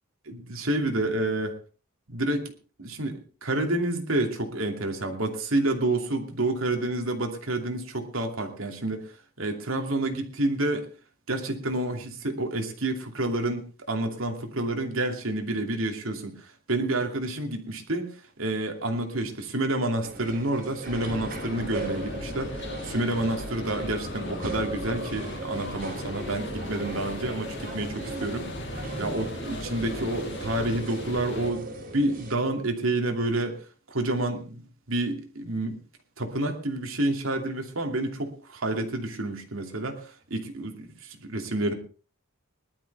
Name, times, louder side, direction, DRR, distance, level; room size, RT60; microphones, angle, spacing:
voice 1, 0.3-1.5 2.1-2.5 2.8-9.0 9.4-10.9 11.3-18.1 18.4-28.5 29.0-31.7 31.9-33.6 33.9-35.8 36.2-41.8, right 2 dB, 70° right, 4 dB, 2.8 m, -29 dB
India-Restaurant Ambient Sounds, 20.0-32.3, right 2 dB, 40° right, 3.5 m, -38 dB
sound 1, 20.8-31.5, left 1 dB, 55° left, 2.3 m, -38 dB
20.0 x 12.5 x 3.5 m, 0.38 s
head